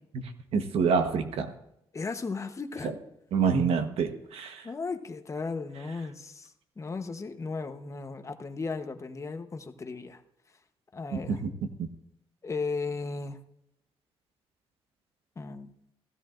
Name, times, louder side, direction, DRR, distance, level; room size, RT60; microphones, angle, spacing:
voice 1, 0.5-1.5 2.8-2.9 3.3-4.7 11.1-11.5 11.8-11.9, right 5 dB, 85° right, 7 dB, 1.2 m, -27 dB
voice 2, 1.9-2.9 4.6-10.2 10.9-11.4 12.4-13.4 15.4-15.7, left 4 dB, 30° left, 7 dB, 1.0 m, -36 dB
16.5 x 15.5 x 2.6 m, 0.81 s
cardioid pair, 105°, 10 cm